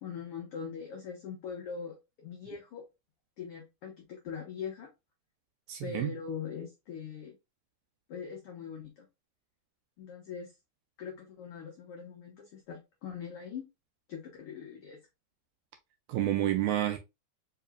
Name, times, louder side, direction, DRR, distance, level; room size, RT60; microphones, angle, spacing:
voice 1, 0.0-2.8 3.4-4.9 5.8-7.4 8.1-9.1 10.0-10.5 11.0-13.6 14.1-15.0, left 6 dB, 80° left, 1.2 m, -42 dB
voice 2, 5.7-6.1 16.1-17.0, right 13 dB, 80° right, 1.7 m, -29 dB
4.8 x 2.9 x 2.3 m
omnidirectional pair, 3.7 m